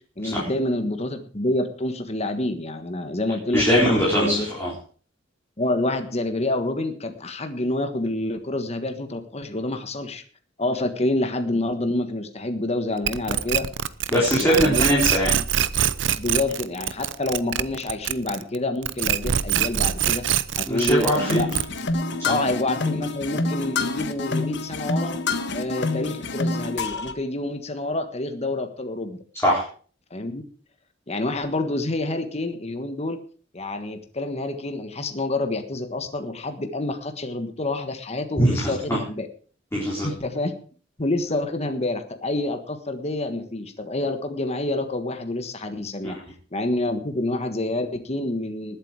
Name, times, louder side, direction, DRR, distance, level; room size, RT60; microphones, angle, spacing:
voice 1, 0.2-4.5 5.6-10.2 10.6-13.7 14.1-14.9 16.2-20.2 20.6-21.5 22.3-25.1 25.5-29.2 30.1-30.4 31.1-33.2 33.5-39.3 40.0-40.5 41.0-46.2 46.5-48.8, left 2 dB, 35° left, 7 dB, 1.5 m, -27 dB
voice 2, 3.5-4.7 14.1-15.3 20.7-21.4 22.2-22.3 29.3-29.6 38.4-39.0 39.7-40.1 46.0-46.2, equal, 15° left, -6 dB, 4.0 m, -21 dB
sound 1, 13.1-18.6 18.8-21.9, right 9 dB, 70° right, 0.7 m, -24 dB
sound 2, 21.2-27.1, left 3 dB, 65° left, 1.4 m, -27 dB
19.5 x 8.2 x 4.8 m, 0.41 s
head